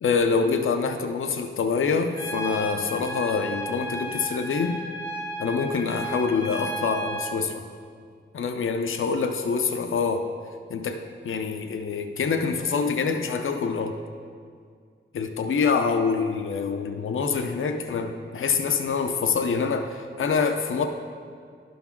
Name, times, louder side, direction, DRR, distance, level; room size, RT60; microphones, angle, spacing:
voice 1, 0.0-4.8 5.4-7.6 8.3-10.3 10.7-14.0 15.1-20.9, left 5 dB, 80° left, 5 dB, 0.5 m, -25 dB
Trumpet, 2.2-7.4, right 1 dB, 40° right, 1.4 m, -34 dB
11.5 x 3.9 x 5.8 m, 2.1 s
wide cardioid pair, 120°, 21 cm